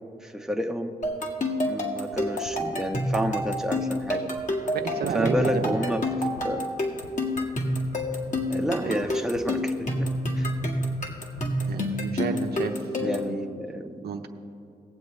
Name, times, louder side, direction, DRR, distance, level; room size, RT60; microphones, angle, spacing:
voice 1, 0.2-1.0 1.6-4.3 5.1-6.1 6.4-6.6 8.5-10.1 10.4-10.5 13.0-14.0, equal, 5° right, 4 dB, 0.9 m, -30 dB
sound 1, 1.0-13.3, left 1 dB, 50° left, 1.8 m, -28 dB
sound 2, 2.1-2.5 3.1-3.5 4.0-4.1 4.4-4.5 5.0-5.1 5.4-5.5 6.0-6.4 7.0-7.4 8.0-8.5 9.0-9.4 10.0-10.1 10.4-10.5 11.0-11.4, left 2 dB, 85° left, 0.9 m, -46 dB
voice 2, 4.7-5.8 8.5-9.0 11.6-13.4 14.0-14.3, right 6 dB, 80° right, 5 dB, 0.8 m, -32 dB
19.5 x 7.6 x 3.2 m, 2.5 s
cardioid pair, 60°, 16 cm